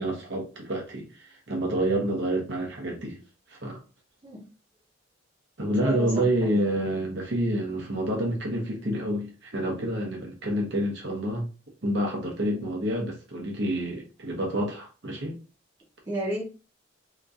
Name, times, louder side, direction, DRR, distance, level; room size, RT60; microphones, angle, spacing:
voice 1, 0.0-3.2 3.5-3.8 5.6-11.4 11.8-15.4, right 1 dB, 65° right, 1.0 m, -28 dB
voice 2, 5.8-6.2 12.4-12.7 16.0-16.4, right 1 dB, 25° right, 0.9 m, -32 dB
3.0 x 2.6 x 2.4 m
head